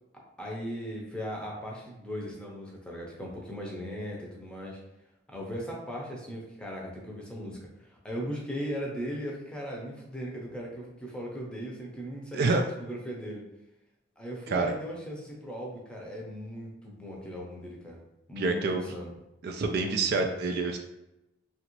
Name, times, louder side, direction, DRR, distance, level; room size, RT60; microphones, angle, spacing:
voice 1, 0.1-4.8 5.3-13.4 14.2-18.0 18.3-19.1 19.8-20.3, equal, 5° left, -2 dB, 0.6 m, -38 dB
voice 2, 18.4-18.8 19.4-20.8, right 3 dB, 60° right, 4 dB, 0.3 m, -27 dB
2.9 x 2.5 x 3.0 m, 0.92 s
head